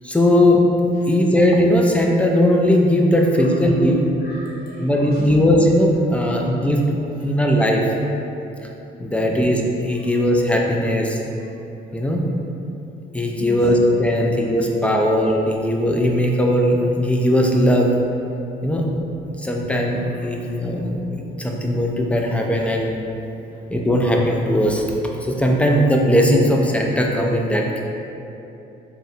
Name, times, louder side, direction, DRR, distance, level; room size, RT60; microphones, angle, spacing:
voice 1, 0.0-0.6 1.1-4.0 4.8-6.8 7.2-7.8 9.0-11.2 11.9-12.2 13.1-17.9 18.6-18.9 19.4-22.9 23.7-24.8 25.2-27.8, equal, 5° left, 0 dB, 0.3 m, -18 dB
voice 2, 4.2-5.4 6.2-6.4 7.2-7.3 8.9-9.3 10.0-10.1 13.3-13.6 14.9-15.0 20.4-20.5 20.8-20.9 23.2-23.6, equal, 50° left, -7 dB, 0.8 m, -40 dB
3.9 x 2.1 x 2.7 m, 2.8 s
cardioid pair, 90°, 20 cm